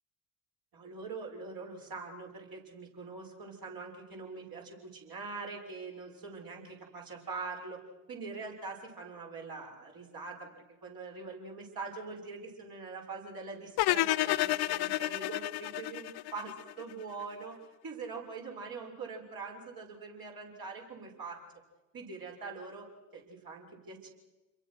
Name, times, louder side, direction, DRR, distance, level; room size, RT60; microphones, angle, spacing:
voice 1, 0.7-7.8 8.1-17.6 17.8-21.4 21.9-22.9 23.1-24.1, right 4 dB, 50° right, 0 dB, 6.6 m, -43 dB
sound 1, 13.8-16.9, left 17 dB, 55° left, 0.8 m, -30 dB
29.0 x 22.5 x 6.3 m, 1.1 s
hypercardioid pair, 55°, 46 cm